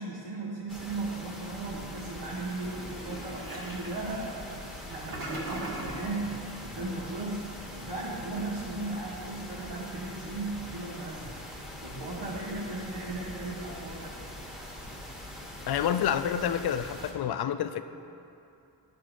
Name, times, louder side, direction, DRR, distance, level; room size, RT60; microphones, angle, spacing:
voice 1, 0.0-7.4 7.7-11.4 11.8-14.2, right 2 dB, 75° right, -7 dB, 1.4 m, -36 dB
sound 1, 0.7-17.1, left 1 dB, ahead, 1.3 m, -43 dB
Toilet flush, 2.6-6.1, right 2 dB, 50° right, 1.9 m, -40 dB
voice 2, 15.7-17.8, left 9 dB, 60° left, 11 dB, 0.5 m, -28 dB
9.8 x 4.2 x 5.1 m, 2.7 s
cardioid pair, 70°, 43 cm